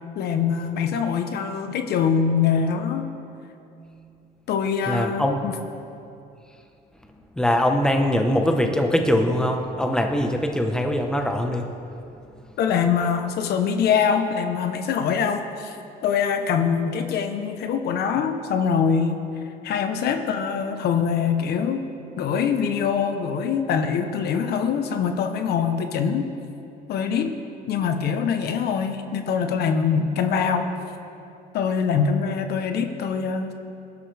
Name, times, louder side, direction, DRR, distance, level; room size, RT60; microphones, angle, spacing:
voice 1, 0.1-3.0 4.5-5.5 12.6-15.8 16.0-19.2 19.6-21.8 22.2-26.3 26.9-27.4 27.7-30.7 31.5-33.5, left 6 dB, 70° left, 6 dB, 1.0 m, -23 dB
voice 2, 4.9-5.4 7.4-11.7, left 1 dB, 5° left, 3 dB, 1.2 m, -22 dB
21.0 x 12.0 x 3.5 m, 2.7 s
cardioid pair, 110°, 17 cm